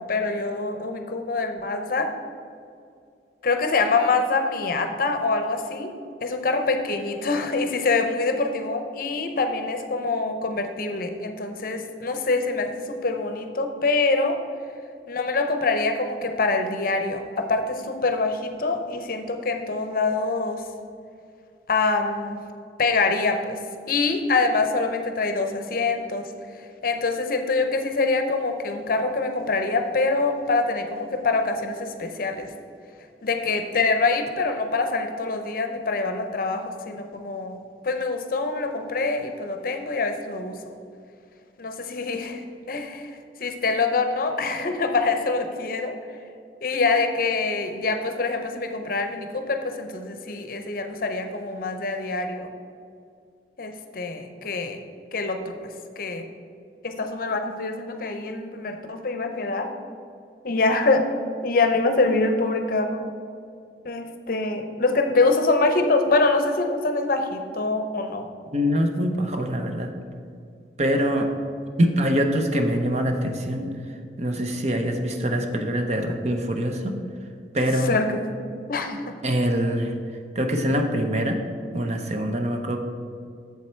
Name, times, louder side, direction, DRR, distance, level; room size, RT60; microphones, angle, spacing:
voice 1, 0.0-2.1 3.4-5.9 6.2-14.4 15.1-20.6 21.7-22.4 22.8-23.6 23.9-26.3 26.8-32.5 33.2-37.6 37.8-40.6 41.6-42.4 42.7-45.9 46.6-52.5 53.6-54.8 55.1-55.6 56.0-56.3 56.8-59.7 60.4-61.0 61.4-63.0 63.8-68.3 69.4-69.5 77.8-78.2 78.7-79.1, left 3 dB, 50° left, 6 dB, 0.7 m, -25 dB
voice 2, 68.5-69.9 70.8-71.3 71.8-73.7 74.2-77.0 77.5-78.0 79.2-79.9 80.4-81.4 81.7-82.8, equal, 40° right, 4 dB, 0.7 m, -24 dB
7.5 x 7.2 x 4.4 m, 2.3 s
head